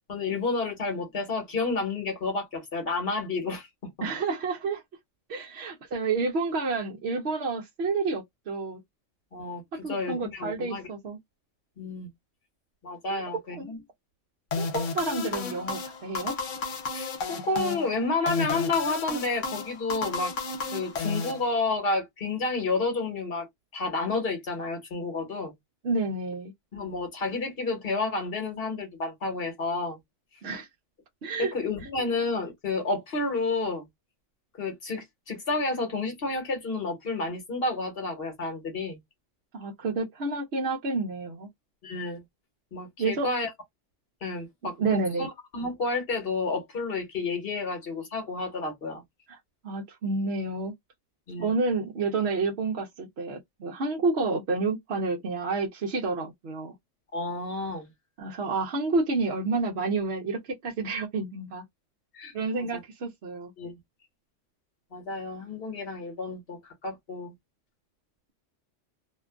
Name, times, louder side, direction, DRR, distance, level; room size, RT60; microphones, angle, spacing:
voice 1, 0.1-3.7 4.0-4.1 9.3-10.8 11.8-12.1 12.8-13.8 16.9-20.3 20.7-23.5 23.7-25.5 26.7-30.0 31.4-33.9 34.6-39.0 41.8-42.2 42.7-43.5 44.2-45.3 45.5-49.0 51.3-51.5 57.1-57.9 62.1-62.8 63.6-63.7 64.9-67.3, left 3 dB, 50° left, 1.5 m, -30 dB
voice 2, 4.0-4.8 5.3-8.8 9.8-11.2 13.1-13.8 14.6-16.3 25.8-26.5 30.4-30.7 31.2-31.5 39.5-41.5 43.0-43.3 44.8-45.3 49.3-49.4 49.6-50.7 51.4-56.7 58.2-61.6 62.3-63.5, right 3 dB, 60° right, 0.9 m, -29 dB
sound 1, 14.5-21.9, left 4 dB, 75° left, 1.1 m, -32 dB
2.9 x 2.4 x 2.3 m
omnidirectional pair, 1.3 m